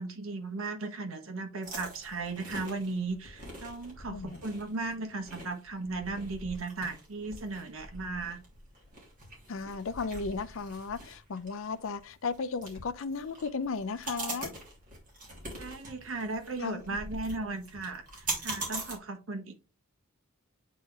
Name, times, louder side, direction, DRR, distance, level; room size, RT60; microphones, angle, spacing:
voice 1, 0.0-8.4 15.6-19.5, right 3 dB, 70° right, 1.2 m, -36 dB
sound 1, 1.6-19.0, right 2 dB, 40° right, 2.9 m, -43 dB
voice 2, 4.1-4.4 9.5-14.5 16.6-16.8, left 4 dB, 65° left, 0.5 m, -35 dB
8.4 x 3.7 x 3.3 m
head